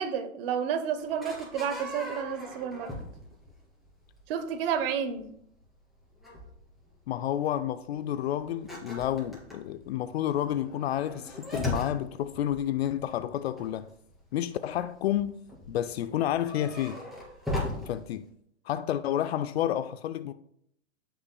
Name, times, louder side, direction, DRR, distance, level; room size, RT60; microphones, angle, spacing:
voice 1, 0.0-2.9 4.3-5.3, right 7 dB, 50° right, 1.1 m, -30 dB
sound 1, 1.0-3.6 3.9-4.2 4.8-5.2 5.6-5.7 6.1-6.6 7.0-7.1 7.4-7.6 7.9-8.0 8.4-14.2 14.5-15.2 15.5-18.0, left 1 dB, ahead, 2.8 m, -38 dB
voice 2, 7.1-13.9 14.3-15.4 15.7-17.0 17.9-18.3 18.7-20.3, left 11 dB, 55° left, 0.5 m, -30 dB
15.0 x 5.8 x 2.3 m
hypercardioid pair, 130°, 38 cm